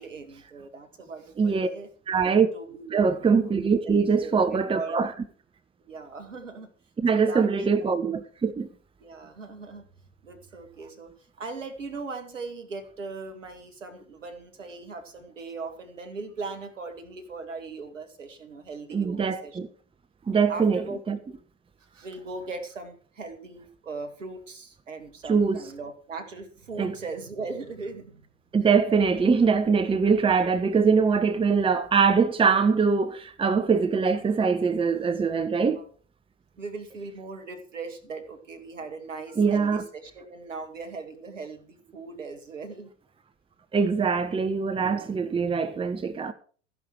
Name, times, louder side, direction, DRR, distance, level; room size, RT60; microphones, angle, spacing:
voice 1, 0.0-1.9 2.5-3.1 3.5-3.6 3.8-5.0 5.8-6.7 7.1-7.9 9.0-9.9 10.2-11.1 11.4-19.6 20.3-21.0 21.9-28.3 35.6-35.8 36.6-42.9, right 4 dB, 80° right, 2.2 m, -39 dB
voice 2, 1.4-1.7 2.1-2.5 2.9-5.1 7.0-8.7 18.9-19.7 20.3-21.2 25.3-25.6 26.8-27.0 28.5-35.8 39.4-39.8 43.7-46.3, right 5 dB, 15° right, 1.1 m, -23 dB
13.5 x 11.0 x 4.7 m
figure-of-eight pair, 80°, 37 cm